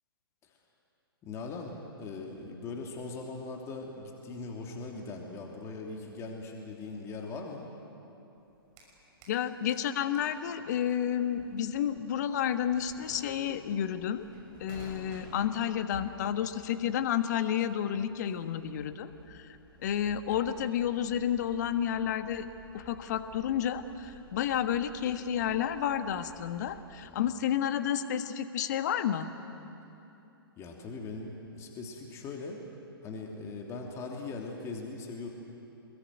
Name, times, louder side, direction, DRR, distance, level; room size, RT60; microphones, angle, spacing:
voice 1, 1.2-7.7 27.0-27.3 30.6-32.6 33.0-35.3, left 3 dB, 20° left, 0 dB, 3.0 m, -40 dB
sound 1, 8.4-9.4 9.7-27.1, right 3 dB, 30° right, 6.2 m, -55 dB
voice 2, 9.3-14.3 14.6-19.5 19.8-22.5 22.7-29.3, left 9 dB, 45° left, 10 dB, 1.5 m, -31 dB
27.0 x 21.5 x 9.4 m, 3.0 s
figure-of-eight pair, 120°, 13 cm